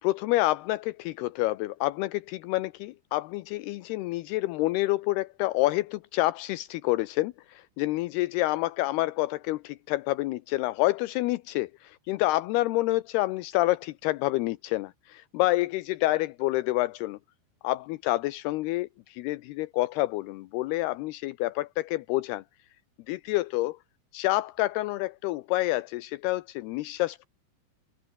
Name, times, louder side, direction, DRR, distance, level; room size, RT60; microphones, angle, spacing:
voice 1, 0.0-17.2 17.6-22.4 23.1-23.8 24.1-27.3, left 18 dB, 80° left, 2.4 m, -28 dB
open air
omnidirectional pair, 5.4 m